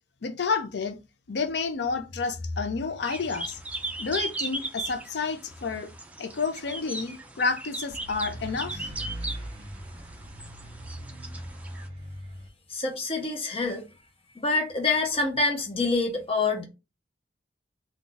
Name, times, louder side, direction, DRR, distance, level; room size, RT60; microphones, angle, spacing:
voice 1, 0.2-1.0 1.3-3.6 4.0-5.9 6.2-8.9, left 4 dB, 65° left, 0.5 m, -30 dB
sound 1, 3.0-11.9, right 2 dB, 10° right, 0.4 m, -38 dB
sound 2, 7.9-12.5, equal, 35° right, 0.8 m, -40 dB
voice 2, 12.7-13.8 14.3-16.6, left 3 dB, 35° left, 0.8 m, -26 dB
2.5 x 2.3 x 3.8 m
head